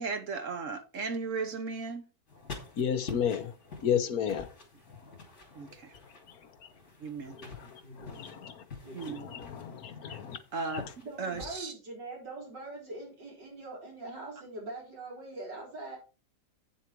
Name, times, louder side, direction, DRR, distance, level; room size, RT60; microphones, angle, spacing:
voice 1, 0.0-2.1 5.5-5.9 7.0-7.4 8.9-9.3 10.5-10.9 11.2-11.7, right 4 dB, 55° right, 1.2 m, -36 dB
sound 1, 2.3-11.6, left 4 dB, 40° left, 3.0 m, -48 dB
voice 2, 2.8-3.5 3.8-4.5 7.3-8.6 9.0-10.4 10.7-10.9, left 8 dB, 60° left, 1.4 m, -33 dB
voice 3, 7.4-8.2 8.8-9.2 11.0-16.0, right 2 dB, 90° right, 4.7 m, -43 dB
8.4 x 7.2 x 4.5 m
omnidirectional pair, 1.8 m